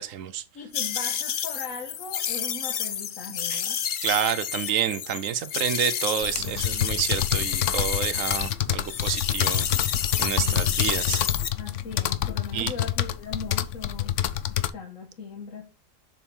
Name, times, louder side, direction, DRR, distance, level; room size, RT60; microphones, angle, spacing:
voice 1, 0.0-0.4 3.5-3.6 4.0-9.7 10.2-11.2 12.5-12.7, right 9 dB, 85° right, 1.1 m, -29 dB
voice 2, 0.5-3.8 10.2-10.8 11.6-14.1 14.5-15.6, left 4 dB, 90° left, 1.7 m, -39 dB
sound 1, 0.7-8.5 8.8-11.5, left 8 dB, 50° left, 0.7 m, -30 dB
sound 2, 6.2-14.7, left 11 dB, 70° left, 1.0 m, -27 dB
7.2 x 7.0 x 3.7 m
omnidirectional pair, 1.3 m